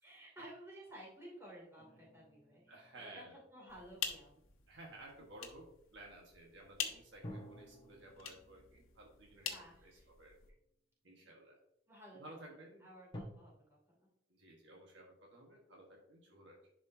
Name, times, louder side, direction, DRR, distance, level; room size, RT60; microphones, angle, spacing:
voice 1, 0.0-4.4 6.8-7.0 9.4-10.1 11.9-12.3 12.8-14.1, right 1 dB, 15° right, -4 dB, 2.6 m, -55 dB
sound 1, 1.8-4.4 7.2-10.6 11.3-11.4 13.1-13.2, equal, 25° left, 1.0 m, -54 dB
voice 2, 2.7-3.3 4.7-10.4 11.0-11.6 12.1-12.9 14.3-16.7, right 1 dB, 60° right, -1 dB, 1.4 m, -55 dB
sound 2, 3.7-10.5, left 8 dB, 90° left, 1.0 m, -47 dB
11.0 x 4.9 x 2.7 m, 0.75 s
head